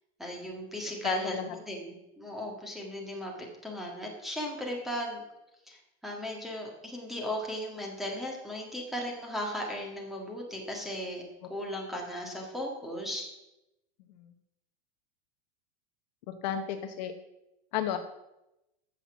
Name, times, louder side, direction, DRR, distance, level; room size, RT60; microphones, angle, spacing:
voice 1, 0.2-5.2 5.7-5.8 6.0-11.2 11.5-13.3, equal, ahead, 0 dB, 1.7 m, -36 dB
voice 2, 1.0-1.5 16.3-17.1 17.7-18.0, left 9 dB, 45° left, 7 dB, 0.9 m, -32 dB
15.0 x 5.7 x 7.1 m, 0.92 s
supercardioid pair, 175°, 30 cm